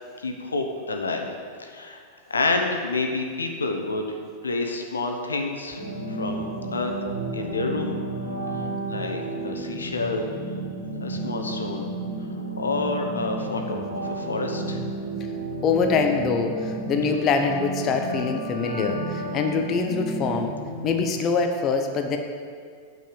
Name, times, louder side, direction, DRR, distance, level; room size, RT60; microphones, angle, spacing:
voice 1, 0.2-1.3 1.6-2.0 2.3-4.2 4.4-5.8 6.1-6.9 7.3-8.0 8.9-10.2 11.0-11.9 12.6-14.8, left 3 dB, 75° left, 4 dB, 1.0 m, -28 dB
sound 1, 5.7-21.1, right 2 dB, 85° right, 2.1 m, -32 dB
voice 2, 15.6-20.6 20.8-22.2, left 5 dB, 30° left, 4 dB, 0.8 m, -24 dB
8.5 x 5.4 x 7.6 m, 2.1 s
figure-of-eight pair, 90°, 0 cm